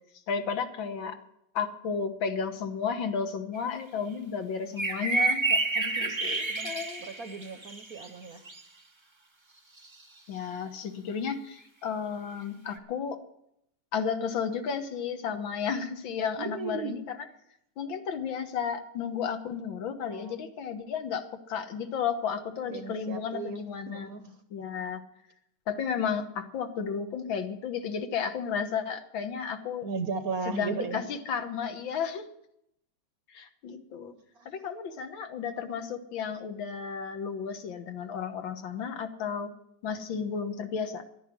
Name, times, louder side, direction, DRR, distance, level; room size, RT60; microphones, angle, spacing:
voice 1, 0.3-1.2 1.6-7.1 10.3-13.2 13.9-17.0 17.8-25.0 25.7-29.9 30.5-32.3 33.3-34.1 34.5-39.5 39.8-41.0, left 6 dB, 70° left, 8 dB, 1.9 m, -33 dB
sound 1, 3.5-3.6 4.8-8.6 9.8-9.9 12.8-12.9, right 3 dB, 20° right, 0.7 m, -29 dB
voice 2, 7.0-8.4 16.4-17.0 20.0-20.4 22.6-23.6 23.9-24.3 29.8-31.0 34.4-34.5, right 5 dB, 55° right, 8 dB, 1.1 m, -36 dB
11.5 x 10.0 x 9.6 m, 0.76 s
omnidirectional pair, 2.3 m